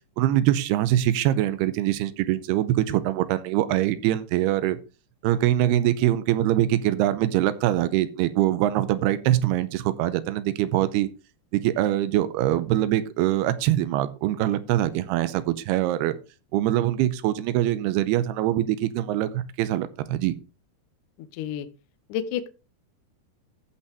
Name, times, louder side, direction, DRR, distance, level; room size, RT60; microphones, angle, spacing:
voice 1, 0.2-4.8 5.2-11.1 11.5-16.2 16.5-20.3, right 13 dB, 85° right, 13 dB, 2.6 m, -23 dB
voice 2, 21.3-21.7 22.1-22.5, left 9 dB, 85° left, 12 dB, 1.8 m, -29 dB
15.0 x 5.6 x 3.4 m, 0.32 s
omnidirectional pair, 4.7 m